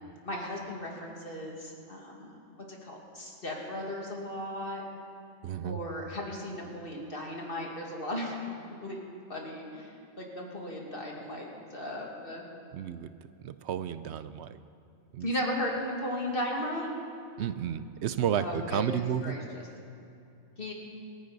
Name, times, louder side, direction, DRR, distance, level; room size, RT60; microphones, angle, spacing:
voice 1, 0.2-2.4 2.7-4.8 5.6-8.4 8.7-12.4 15.2-16.9 18.3-19.6 20.6-20.7, left 1 dB, 40° left, -1 dB, 2.4 m, -36 dB
voice 2, 5.4-5.8 12.7-13.1 13.4-14.6 15.1-15.3 17.4-19.3, right 9 dB, 65° right, 13 dB, 0.7 m, -32 dB
26.0 x 10.5 x 4.0 m, 2.7 s
omnidirectional pair, 1.4 m